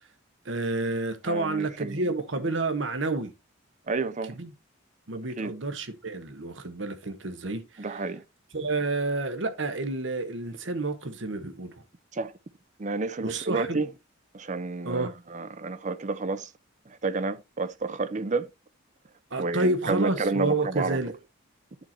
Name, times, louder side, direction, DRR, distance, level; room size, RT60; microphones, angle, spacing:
voice 1, 0.4-3.3 4.4-4.5 5.1-7.9 8.5-11.7 13.2-13.8 14.8-15.2 19.3-21.1, right 2 dB, 65° right, 1.2 m, -29 dB
voice 2, 1.3-2.0 3.9-4.3 5.4-5.5 7.8-8.2 12.1-12.3 12.8-13.9 14.3-16.5 16.9-18.5 19.4-21.0, right 3 dB, 35° right, 0.6 m, -30 dB
10.5 x 4.4 x 4.2 m
head